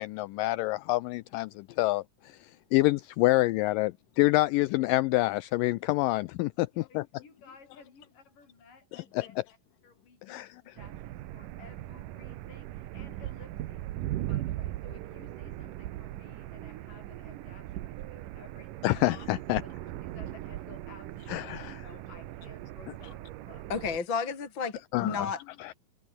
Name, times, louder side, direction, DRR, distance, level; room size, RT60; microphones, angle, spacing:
voice 1, 0.0-2.4 2.7-7.0 8.9-9.3 10.3-10.5 18.8-19.6 21.3-21.8 24.9-25.3 25.6-25.7, left 19 dB, 85° left, 2.0 m, -27 dB
voice 2, 6.6-9.4 9.8-13.9 14.3-19.0 19.6-19.7 20.0-21.5 21.8-23.7, left 4 dB, 60° left, 7.7 m, -55 dB
sound 1, 10.8-24.0, right 15 dB, 70° right, 2.4 m, -39 dB
voice 3, 23.7-25.4, left 5 dB, 35° left, 3.4 m, -32 dB
omnidirectional pair, 4.4 m